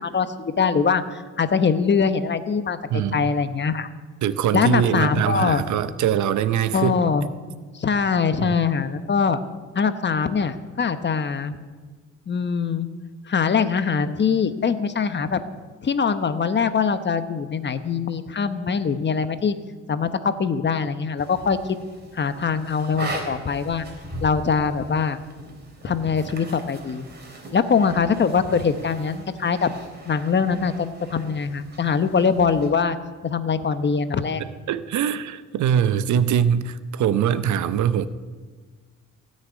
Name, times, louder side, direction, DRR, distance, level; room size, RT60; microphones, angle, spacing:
voice 1, 0.0-2.8 3.1-3.9 4.5-5.6 6.7-7.2 7.7-9.4 9.7-11.6 12.3-12.9 13.3-15.4 15.8-19.6 19.9-21.6 22.1-23.9 24.2-25.2 25.8-27.1 27.5-29.7 30.0-30.7 31.1-33.0 33.2-34.4, left 5 dB, 35° left, 11 dB, 1.0 m, -22 dB
voice 2, 2.9-3.3 4.2-6.9 8.4-8.6 34.7-38.1, right 9 dB, 70° right, 14 dB, 0.8 m, -22 dB
sound 1, 21.2-32.7, right 1 dB, 35° right, 3.8 m, -39 dB
16.5 x 6.6 x 9.4 m, 1.4 s
cardioid pair, 90°, 30 cm